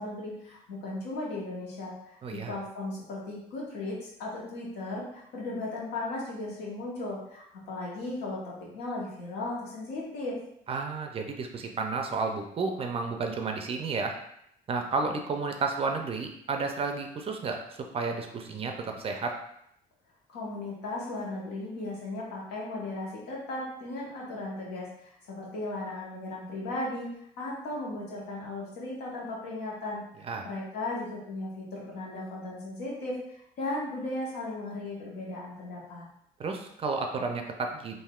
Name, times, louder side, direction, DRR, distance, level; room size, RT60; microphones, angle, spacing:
voice 1, 0.0-2.2 2.5-10.4 20.3-27.1 27.4-33.2 33.6-36.1, left 2 dB, 80° left, -4 dB, 1.1 m, -36 dB
voice 2, 2.2-2.5 10.7-14.1 14.7-17.6 17.9-19.3 30.2-30.4 36.4-38.0, right 4 dB, 35° right, 4 dB, 0.4 m, -32 dB
3.4 x 2.5 x 2.3 m, 0.75 s
cardioid pair, 110°, 17 cm